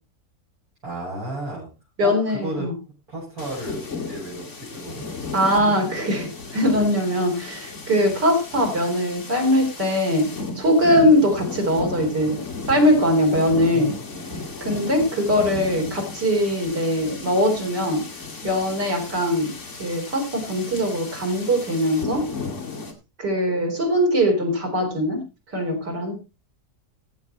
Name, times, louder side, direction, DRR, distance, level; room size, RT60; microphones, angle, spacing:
voice 1, 0.8-1.7 2.0-2.1 2.4-2.7 3.1-5.1 7.9-8.1 13.7-14.5, right 1 dB, 65° right, -8 dB, 7.2 m, -33 dB
voice 2, 2.0-2.7 5.3-12.4 12.7-14.0 14.6-18.0 18.4-22.3 23.2-26.1, equal, 85° right, 1 dB, 4.4 m, -21 dB
sound 1, 3.4-22.9, left 4 dB, 45° left, 2.3 m, -35 dB
15.0 x 8.0 x 4.3 m, 0.29 s
omnidirectional pair, 1.8 m